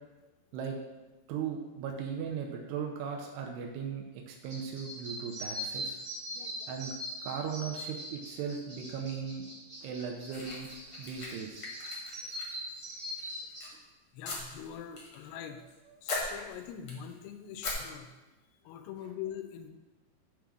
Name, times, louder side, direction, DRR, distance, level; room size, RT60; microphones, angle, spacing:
voice 1, 1.3-6.0 6.7-6.9 7.2-9.5 9.8-10.7 11.0-11.8 15.9-16.0, right 7 dB, 90° right, 1 dB, 2.7 m, -37 dB
sound 1, 4.4-13.6, equal, 20° right, 1.5 m, -41 dB
voice 2, 6.3-6.7 14.1-15.6 16.0-18.2 18.6-19.7, left 9 dB, 85° left, 7 dB, 2.7 m, -43 dB
sound 2, 10.3-12.8 13.2-13.7 14.2-15.2 15.4-15.7 16.1-17.1 17.6-17.7, left 3 dB, 60° left, 1.4 m, -39 dB
7.4 x 3.5 x 6.3 m, 1.1 s
omnidirectional pair, 4.7 m